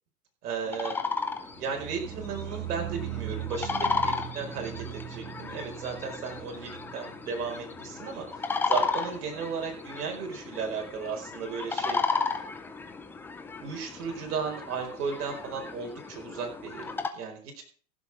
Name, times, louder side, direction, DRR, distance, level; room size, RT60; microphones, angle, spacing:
voice 1, 0.4-1.0 1.6-4.8 5.1-12.0 13.6-17.6, right 5 dB, 80° right, 2 dB, 4.9 m, -35 dB
sound 1, 0.6-17.1, left 4 dB, 5° left, 0.4 m, -34 dB
sound 2, 1.5-8.6 8.9-9.4 9.7-9.8, right 14 dB, 30° right, 0.9 m, -40 dB
15.5 x 7.3 x 4.8 m, 0.42 s
supercardioid pair, 135°, 46 cm